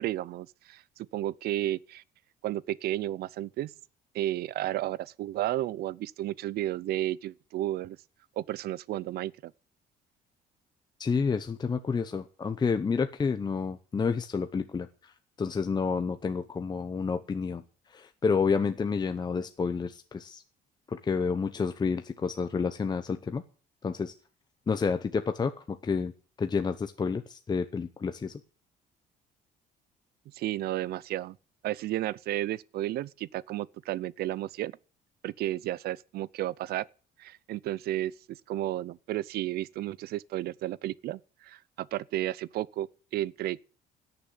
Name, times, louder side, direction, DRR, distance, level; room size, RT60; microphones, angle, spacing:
voice 1, 0.0-2.0 2.4-3.7 4.1-8.0 8.4-9.5 30.3-31.4 31.6-34.7 35.2-36.9 37.2-43.6, right 14 dB, 70° right, 0.6 m, -33 dB
voice 2, 11.0-17.6 17.9-20.4 20.9-23.4 23.8-24.1 24.7-26.1 26.4-28.4, left 5 dB, 25° left, 0.8 m, -29 dB
17.5 x 6.9 x 7.9 m
cardioid pair, 110°, 17 cm